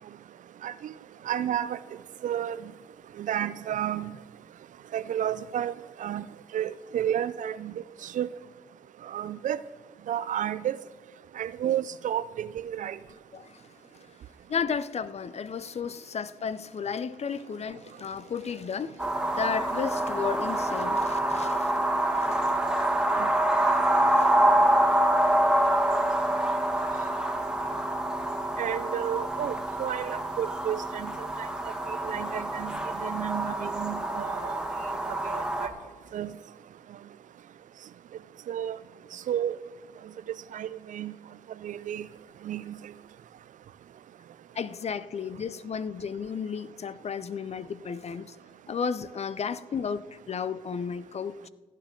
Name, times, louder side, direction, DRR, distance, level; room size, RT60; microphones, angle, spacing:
voice 1, 0.6-0.9 1.3-1.8 2.2-2.6 3.2-4.1 4.9-5.7 6.0-6.3 6.5-7.7 8.0-8.3 9.1-9.6 10.1-10.8 11.4-13.0 23.2-23.3 28.6-34.6 35.1-35.7 36.1-36.3 38.5-38.8 39.1-39.5 40.5-41.1 41.6-42.1 42.4-42.8, right 10 dB, 65° right, 0.5 m, -31 dB
voice 2, 14.5-19.0 19.3-21.7 44.6-48.3 48.7-51.5, left 6 dB, 50° left, 0.6 m, -33 dB
sound 1, 19.0-35.7, right 1 dB, 5° right, 1.9 m, -26 dB
16.0 x 9.3 x 3.8 m
hypercardioid pair, 45°, 14 cm